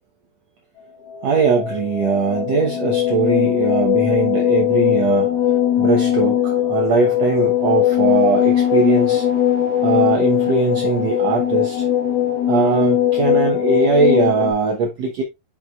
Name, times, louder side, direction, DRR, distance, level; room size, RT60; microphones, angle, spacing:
sound 1, 1.1-14.5, left 11 dB, 75° left, 3.7 m, -19 dB
voice 1, 1.2-5.3 5.8-9.3 9.8-11.9 12.5-15.2, right 5 dB, 85° right, 1.4 m, -20 dB
8.7 x 5.6 x 2.3 m
omnidirectional pair, 4.4 m